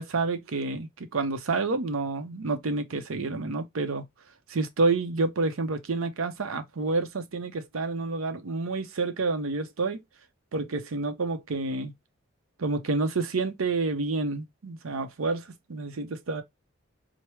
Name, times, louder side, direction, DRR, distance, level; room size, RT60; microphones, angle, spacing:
voice 1, 0.0-4.0 4.5-10.0 10.5-11.9 12.6-16.4, right 3 dB, 80° right, 0.6 m, -29 dB
4.7 x 2.1 x 3.0 m
head